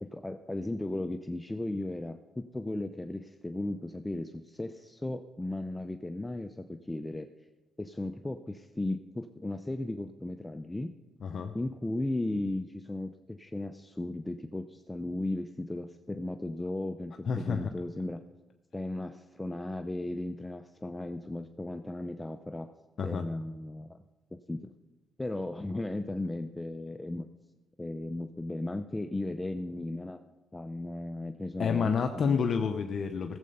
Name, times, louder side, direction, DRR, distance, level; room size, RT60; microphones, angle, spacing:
voice 1, 0.0-7.3 7.8-10.9 11.5-18.2 18.7-22.7 23.0-24.0 24.3-24.7 25.2-27.2 27.8-30.2 30.5-32.7, left 1 dB, 10° left, 8 dB, 0.5 m, -36 dB
voice 2, 11.2-11.5 17.3-17.7 23.0-23.2 31.6-33.4, left 6 dB, 55° left, 6 dB, 0.7 m, -29 dB
15.5 x 7.7 x 5.5 m, 1.2 s
cardioid pair, 90°, 0 cm